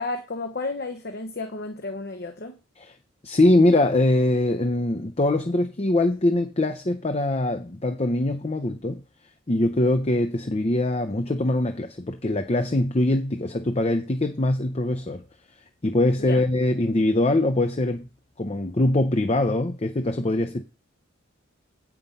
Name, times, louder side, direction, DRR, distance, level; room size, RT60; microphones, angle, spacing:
voice 1, 0.0-2.6 16.2-16.4, left 3 dB, 50° left, 0.9 m, -32 dB
voice 2, 3.2-9.0 9.5-15.2 15.8-18.1 18.4-20.6, left 1 dB, 30° left, 0.7 m, -22 dB
8.6 x 5.8 x 5.4 m
head